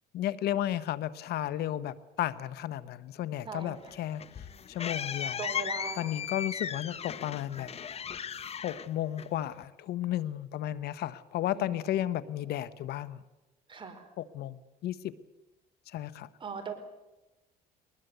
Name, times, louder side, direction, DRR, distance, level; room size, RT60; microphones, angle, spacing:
voice 1, 0.1-4.2 4.7-5.4 6.0-7.7 8.6-13.2 14.2-15.1 15.9-16.3, left 12 dB, 75° left, 16 dB, 1.0 m, -33 dB
voice 2, 3.4-3.8 5.4-6.2 11.5-11.8 13.7-14.1 16.4-16.7, right 5 dB, 30° right, 5 dB, 4.7 m, -40 dB
sound 1, 3.8-9.6, left 7 dB, 35° left, 1.0 m, -37 dB
21.5 x 20.5 x 8.0 m, 1.0 s
cardioid pair, 110°, 17 cm